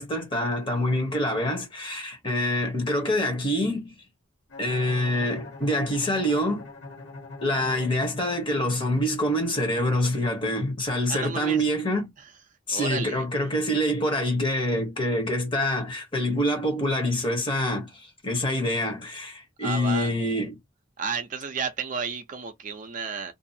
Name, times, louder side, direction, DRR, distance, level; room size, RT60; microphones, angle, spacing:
voice 1, 0.0-3.9 4.6-6.7 7.4-12.1 12.7-20.6, left 1 dB, 25° left, 0.9 m, -26 dB
Bowed string instrument, 4.5-8.6, left 3 dB, 55° left, 1.5 m, -43 dB
voice 2, 11.1-11.7 12.7-13.3 19.6-20.1 21.0-23.3, right 5 dB, 40° right, 0.4 m, -32 dB
2.5 x 2.3 x 2.7 m
head